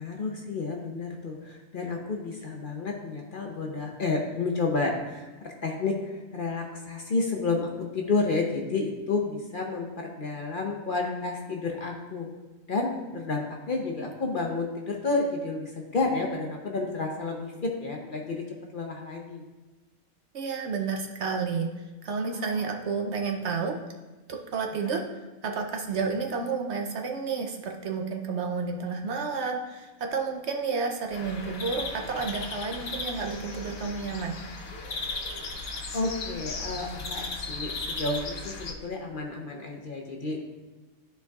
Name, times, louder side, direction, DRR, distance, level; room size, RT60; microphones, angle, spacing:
voice 1, 0.0-12.3 12.7-18.4 18.7-19.4 22.3-22.8 24.8-24.9 35.9-40.4, left 3 dB, 45° left, 1 dB, 0.8 m, -31 dB
voice 2, 20.3-21.7 22.0-23.8 24.3-25.0 25.4-34.4, right 5 dB, 60° right, 2 dB, 0.8 m, -31 dB
sound 1, 31.1-38.7, left 3 dB, 90° left, 1.3 m, -36 dB
13.0 x 4.6 x 2.3 m, 1.2 s
omnidirectional pair, 1.4 m